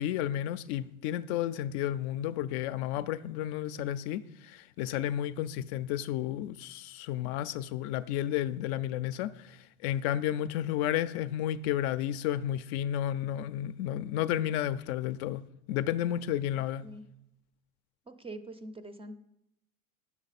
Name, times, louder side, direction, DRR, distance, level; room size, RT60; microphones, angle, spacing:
voice 1, 0.0-15.4 15.7-16.8, left 11 dB, 50° left, 0.5 m, -32 dB
voice 2, 18.1-19.2, right 2 dB, 15° right, 0.5 m, -44 dB
10.0 x 7.3 x 4.1 m
hypercardioid pair, 115°, 43 cm